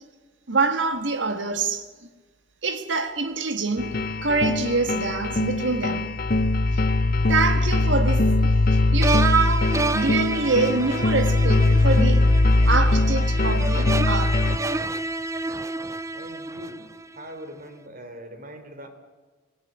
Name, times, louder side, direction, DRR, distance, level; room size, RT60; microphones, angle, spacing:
voice 1, 0.5-1.8 2.6-6.1 6.7-6.8 7.3-12.2 12.7-14.4, right 4 dB, 70° right, 1.8 m, -25 dB
sound 1, 3.8-14.6, left 2 dB, 50° left, 0.8 m, -21 dB
sound 2, 9.0-17.2, right 2 dB, 15° right, 0.6 m, -30 dB
voice 2, 16.1-18.9, equal, 50° right, 3.4 m, -42 dB
25.5 x 17.0 x 8.9 m
head